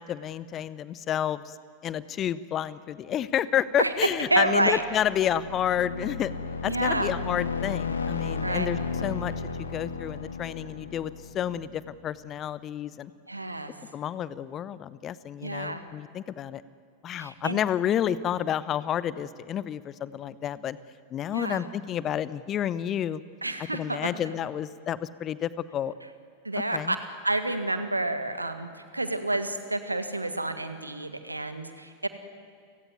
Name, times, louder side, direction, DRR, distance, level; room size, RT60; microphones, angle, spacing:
voice 1, 0.0-1.6 1.8-6.3 6.6-9.3 9.6-13.1 13.9-16.6 17.0-20.8 21.1-23.2 23.7-25.9 26.7-26.9, left 10 dB, 30° left, 17 dB, 0.8 m, -30 dB
sound 1, 4.3-12.0, left 5 dB, 75° left, 1.8 m, -34 dB
voice 2, 4.3-4.8 6.7-7.1 8.4-8.7 13.3-13.7 15.4-15.8 17.2-17.6 21.3-21.6 23.4-24.1 26.4-27.0 27.2-28.7 28.9-32.1, right 2 dB, 85° right, 9 dB, 1.8 m, -29 dB
29.5 x 17.5 x 9.4 m, 2.2 s
figure-of-eight pair, 90°, 0 cm